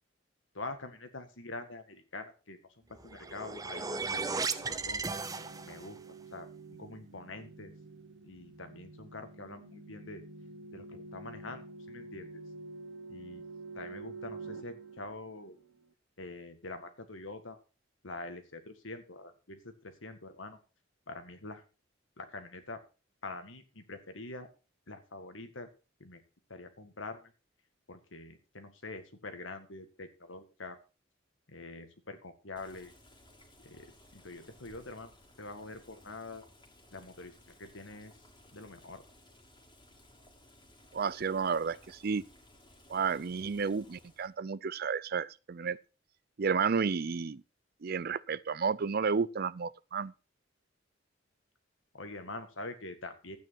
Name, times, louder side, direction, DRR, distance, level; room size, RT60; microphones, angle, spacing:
voice 1, 0.5-2.6 2.9-4.4 4.9-5.0 5.6-6.0 6.3-7.7 8.2-10.2 10.7-12.4 13.1-13.4 13.7-15.6 16.2-17.6 18.0-20.6 21.1-21.6 22.2-22.8 23.2-24.5 24.9-25.7 26.0-26.2 26.5-27.3 27.9-30.8 31.5-32.9 33.6-35.1 35.4-36.4 36.9-38.1 38.5-39.0 51.9-53.4, left 2 dB, 75° left, 2.0 m, -45 dB
sound 1, 3.0-6.0, right 4 dB, 20° right, 0.7 m, -36 dB
sound 2, 3.1-15.8, right 3 dB, 70° right, 1.1 m, -49 dB
Boiling, 32.6-44.3, left 1 dB, 25° left, 2.6 m, -59 dB
voice 2, 40.9-42.2 42.9-45.8 46.4-47.4 47.8-50.1, right 5 dB, 50° right, 0.5 m, -32 dB
12.5 x 9.1 x 4.3 m
head